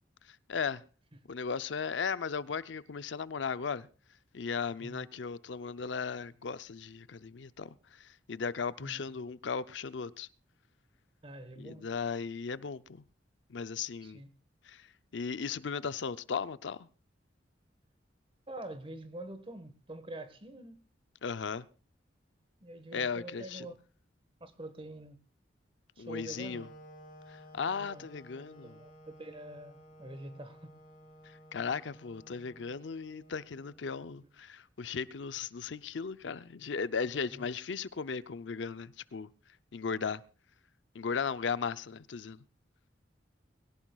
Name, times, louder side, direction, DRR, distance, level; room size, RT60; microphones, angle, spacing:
voice 1, 0.5-0.8 1.3-3.9 4.3-7.8 8.3-10.3 11.6-13.0 13.5-14.2 14.7-14.8 15.1-16.9 21.2-21.7 22.9-23.7 26.0-26.7 27.3-28.8 31.5-39.3 39.7-40.2 40.9-42.4, left 5 dB, 75° left, 0.6 m, -36 dB
voice 2, 4.8-5.1 8.8-9.1 11.2-11.9 14.0-14.3 18.5-20.8 22.6-23.9 24.4-25.2 26.0-26.7 27.8-28.1 28.4-30.7 37.3-37.5, right 1 dB, 30° right, 1.4 m, -46 dB
Wind instrument woodwind instrument, 26.3-34.2, equal, 50° left, 3.4 m, -55 dB
22.0 x 17.0 x 2.4 m
head